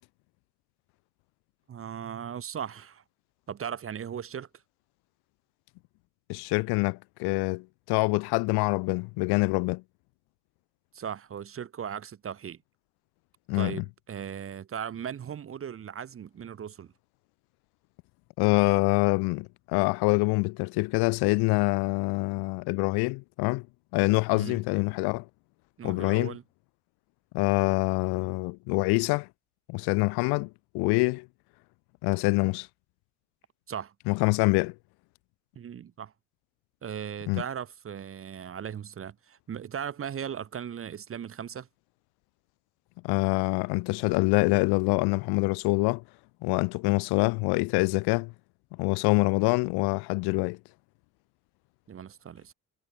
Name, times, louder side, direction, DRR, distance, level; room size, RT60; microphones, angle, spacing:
voice 1, 1.7-3.0 3.5-4.5 10.9-12.6 13.5-16.9 24.3-24.6 25.8-26.4 33.7-33.9 35.6-36.1 36.8-41.7 51.9-52.5, right 8 dB, 25° right, 0.7 m, -37 dB
voice 2, 6.3-9.8 13.5-13.8 18.4-23.7 23.9-25.2 25.8-26.3 27.3-29.3 29.7-30.5 30.7-31.3 32.0-32.7 34.1-34.7 37.3-37.4 43.0-46.0 46.4-48.3 48.8-50.6, left 27 dB, 55° left, 0.5 m, -25 dB
figure-of-eight pair, 45°, 50 cm